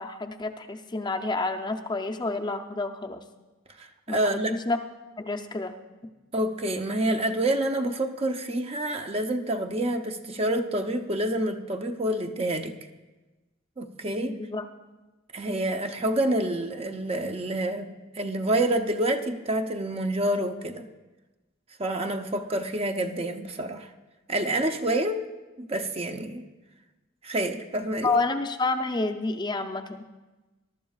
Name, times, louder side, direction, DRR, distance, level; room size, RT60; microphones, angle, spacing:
voice 1, 0.0-3.2 4.1-4.2 4.5-4.8 5.2-5.7 14.4-14.6 28.0-30.1, left 3 dB, 20° left, 4 dB, 0.5 m, -29 dB
voice 2, 3.8-4.5 6.3-12.7 13.8-14.4 15.3-17.9 18.1-20.9 21.8-23.9 24.3-25.3 25.6-26.4 27.2-28.1, right 1 dB, 30° right, 5 dB, 0.6 m, -28 dB
21.0 x 12.0 x 2.4 m, 1.2 s
head